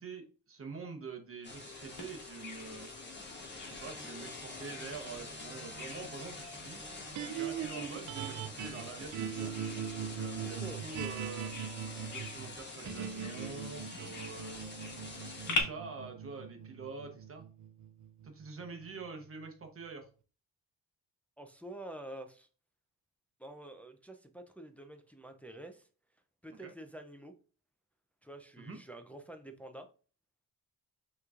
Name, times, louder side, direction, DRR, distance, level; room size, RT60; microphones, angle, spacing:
voice 1, 0.0-2.9 3.6-6.8 7.2-9.5 10.1-11.5 12.0-14.6 15.2-17.4 18.2-20.1 26.5-26.7 28.6-28.8, right 4 dB, 35° right, 4 dB, 1.0 m, -46 dB
sound 1, 1.4-15.6, left 3 dB, 30° left, 1.4 m, -46 dB
Bird vocalization bird call bird song, 2.0-15.6, left 3 dB, 55° left, 1.3 m, -45 dB
sound 2, 7.1-19.4, right 8 dB, 55° right, 0.5 m, -41 dB
voice 2, 10.4-10.8 21.4-22.5 23.4-25.9 26.4-27.3 28.2-29.9, right 1 dB, 5° left, 5 dB, 0.4 m, -48 dB
5.7 x 3.1 x 2.4 m, 0.38 s
cardioid pair, 115°, 38 cm